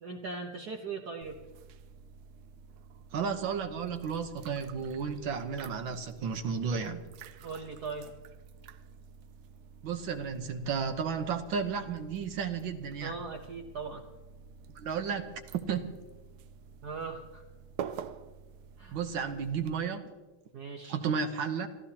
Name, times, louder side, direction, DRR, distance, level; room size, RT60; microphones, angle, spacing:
voice 1, 0.0-1.4 7.4-8.1 13.0-14.0 16.8-17.4 18.8-19.0 20.5-21.0, right 4 dB, 55° right, 1 dB, 1.5 m, -39 dB
sound 1, 1.2-19.8, right 7 dB, 90° right, 1.5 m, -49 dB
voice 2, 3.1-7.0 9.8-13.2 14.8-15.9 18.9-20.1 20.8-21.7, right 6 dB, 70° right, 7 dB, 1.8 m, -33 dB
29.5 x 14.5 x 2.9 m, 1.2 s
omnidirectional pair, 2.3 m